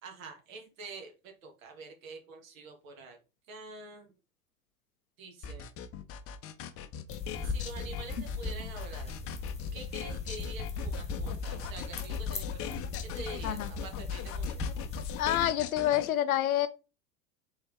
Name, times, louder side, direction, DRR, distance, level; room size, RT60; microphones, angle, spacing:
voice 1, 0.0-3.2 3.5-4.1 5.2-5.7 7.4-9.1 9.7-14.7, right 3 dB, 65° right, 1.7 m, -46 dB
sound 1, 5.4-16.1, left 9 dB, 35° left, 0.6 m, -41 dB
sound 2, 7.1-15.5, left 4 dB, 15° left, 1.2 m, -37 dB
voice 2, 15.2-16.7, left 12 dB, 75° left, 0.7 m, -27 dB
4.4 x 3.5 x 3.5 m
hypercardioid pair, 85°, 42 cm